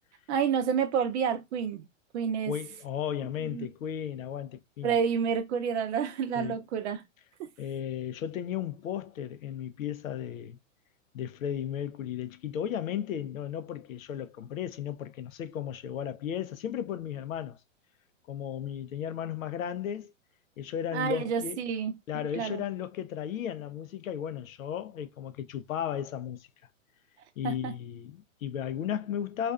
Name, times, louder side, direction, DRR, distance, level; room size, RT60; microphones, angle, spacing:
voice 1, 0.3-1.8 2.1-2.5 3.5-3.7 4.8-7.0 20.9-22.6 27.4-27.7, right 7 dB, 60° right, 0.6 m, -29 dB
voice 2, 2.5-4.9 6.4-6.6 7.6-10.6 11.1-17.6 18.3-20.1 20.6-21.6 22.1-26.5 27.4-29.5, left 9 dB, 85° left, 0.6 m, -35 dB
2.4 x 2.3 x 2.3 m
hypercardioid pair, 135°, 40 cm